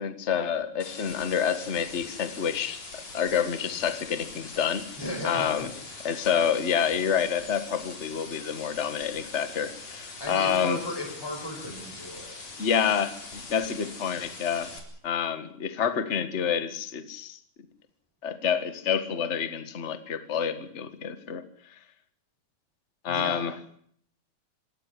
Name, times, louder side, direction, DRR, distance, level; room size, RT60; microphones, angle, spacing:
voice 1, 0.0-4.9 5.2-5.7 6.0-10.8 12.6-14.7 15.0-17.4 18.2-21.4 23.0-23.5, left 8 dB, 30° left, 10 dB, 1.3 m, -28 dB
sound 1, 0.8-14.8, left 3 dB, 50° left, 5.2 m, -43 dB
voice 2, 5.0-5.5 10.2-12.5 23.1-23.4, left 1 dB, 5° left, 3 dB, 5.3 m, -35 dB
26.0 x 13.5 x 9.7 m, 0.63 s
omnidirectional pair, 3.8 m